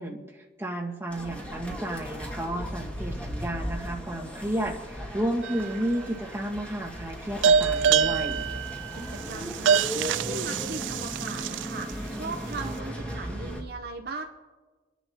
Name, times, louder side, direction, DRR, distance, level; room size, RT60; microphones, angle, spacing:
voice 1, 0.0-8.4, right 1 dB, 15° right, -2 dB, 1.8 m, -32 dB
sound 1, 1.1-13.6, equal, 5° left, 2.0 m, -37 dB
sound 2, 5.4-6.0 7.4-11.9, right 7 dB, 80° right, 0.3 m, -25 dB
voice 2, 8.9-14.2, right 3 dB, 60° right, 4 dB, 0.9 m, -38 dB
26.5 x 11.0 x 2.9 m, 1.3 s
head